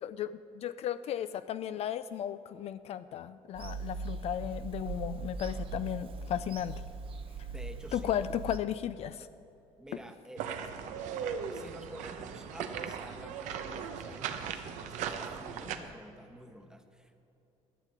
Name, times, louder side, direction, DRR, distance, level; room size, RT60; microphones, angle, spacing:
voice 1, 0.0-6.8 7.9-9.3, left 10 dB, 55° left, 13 dB, 0.4 m, -35 dB
Bird vocalization bird call bird song / Telephone, 3.5-8.6, right 4 dB, 45° right, 0.8 m, -40 dB
voice 2, 7.5-8.1 9.8-10.5 11.5-17.2, right 1 dB, 5° right, 6 dB, 1.0 m, -49 dB
sound 1, 10.4-15.8, right 7 dB, 80° right, 0.9 m, -38 dB
12.0 x 7.3 x 8.2 m, 2.8 s
cardioid pair, 100°, 12 cm